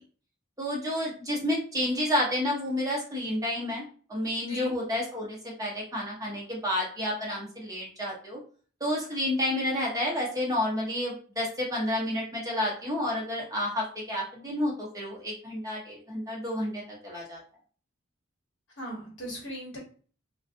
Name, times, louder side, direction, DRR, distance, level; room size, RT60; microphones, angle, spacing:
voice 1, 0.6-3.8 4.1-8.4 8.8-17.4, left 1 dB, 15° right, -4 dB, 0.8 m, -30 dB
voice 2, 18.8-19.8, right 1 dB, 60° left, -3 dB, 1.2 m, -38 dB
2.4 x 2.3 x 2.5 m, 0.42 s
head